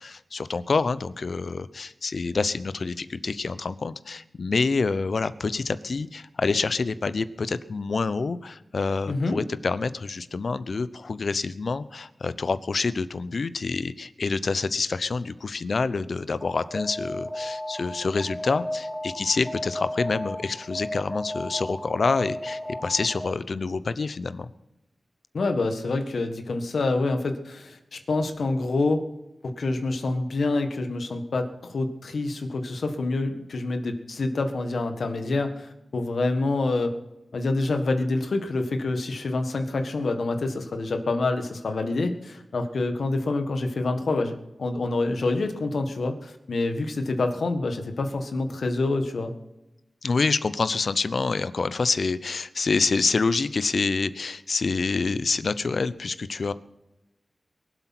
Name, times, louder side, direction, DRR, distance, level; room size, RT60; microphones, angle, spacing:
voice 1, 0.0-24.5 50.0-56.5, left 4 dB, 70° left, 15 dB, 0.7 m, -27 dB
voice 2, 9.1-9.4 25.3-29.0 29.6-36.9 37.3-49.3, left 2 dB, 90° left, 6 dB, 1.7 m, -27 dB
Alarm, 16.4-23.5, left 1 dB, ahead, 1.4 m, -34 dB
22.5 x 8.1 x 5.9 m, 0.93 s
wide cardioid pair, 65°, 0 cm